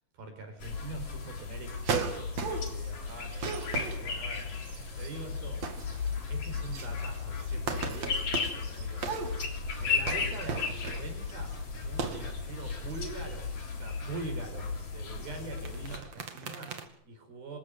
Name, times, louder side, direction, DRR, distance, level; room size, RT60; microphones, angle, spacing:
voice 1, 0.2-4.6 5.0-5.7 6.3-11.6 11.8-13.5 13.8-17.6, right 3 dB, 70° right, 6 dB, 6.9 m, -44 dB
sound 1, 0.6-16.0, left 5 dB, 45° left, 4.6 m, -35 dB
sound 2, 1.8-2.9 3.2-5.1 5.4-6.2 6.4-11.3 11.9-12.3 12.6-13.0 15.4-16.8, right 5 dB, 45° right, 3.2 m, -36 dB
27.0 x 15.5 x 9.4 m, 0.64 s
omnidirectional pair, 4.5 m